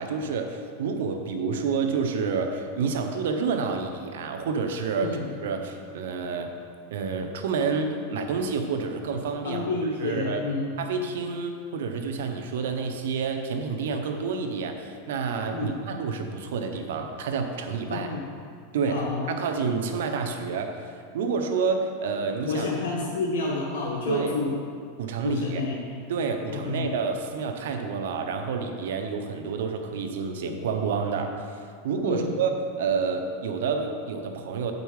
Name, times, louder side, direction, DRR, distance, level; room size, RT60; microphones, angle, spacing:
voice 1, 0.0-5.1 5.4-6.5 6.9-9.6 10.0-10.4 10.8-18.1 18.7-22.7 24.1-24.4 25.0-25.6 26.1-31.3 31.8-34.7, right 5 dB, 80° right, 5 dB, 0.8 m, -29 dB
voice 2, 5.0-5.3 9.4-10.7 15.5-15.7 17.9-18.3 18.9-19.3 22.4-24.5 25.2-25.9 26.5-26.9 32.0-32.3, left 3 dB, 90° left, -3 dB, 1.0 m, -29 dB
8.1 x 5.4 x 4.7 m, 2.2 s
supercardioid pair, 145°, 0 cm